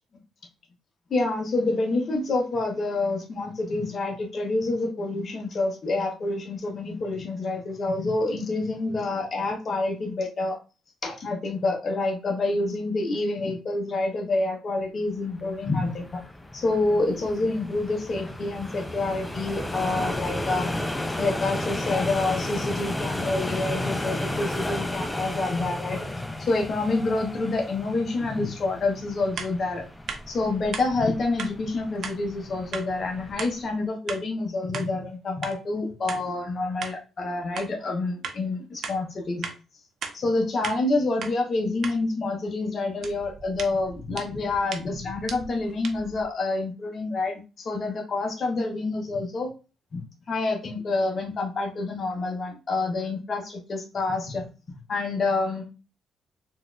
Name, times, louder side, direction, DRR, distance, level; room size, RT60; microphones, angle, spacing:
voice 1, 1.1-10.6 11.0-16.2 16.5-20.8 21.2-26.0 26.4-29.9 30.3-39.5 40.1-49.5 49.9-54.5 54.9-55.7, left 2 dB, 45° left, 2 dB, 0.7 m, -27 dB
sound 1, 15.4-33.7, left 1 dB, 10° left, 0.4 m, -33 dB
sound 2, 29.4-29.5 30.1-30.2 30.7-30.9 31.4-31.5 32.0-32.2 32.7-32.9 33.4-33.5 34.1-34.2 34.7-34.9 35.4-35.6 36.1-36.2 36.8-37.0 37.6-37.7 38.2-38.4 38.8-39.0 39.4-39.6 40.0-40.2 40.6-40.8 41.2-41.3 41.8-42.0 43.0-46.3, right 6 dB, 65° right, 0.5 m, -36 dB
4.0 x 2.4 x 2.2 m, 0.33 s
cardioid pair, 90°, 0 cm